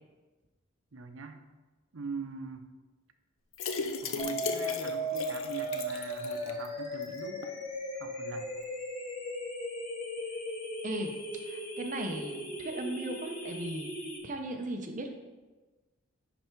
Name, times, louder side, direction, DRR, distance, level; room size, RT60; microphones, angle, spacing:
voice 1, 0.9-1.4 1.9-2.7 4.0-7.5 8.0-8.5, right 4 dB, 75° right, 7 dB, 0.7 m, -42 dB
sound 1, 3.5-6.7 7.0-7.1 7.4-7.5, left 5 dB, 75° left, 0.6 m, -36 dB
sound 2, 4.2-14.2, equal, 35° left, 1.3 m, -37 dB
voice 2, 10.8-11.2 11.5-13.9 14.2-15.1, right 1 dB, 35° right, 4 dB, 0.7 m, -37 dB
10.0 x 3.4 x 4.5 m, 1.2 s
head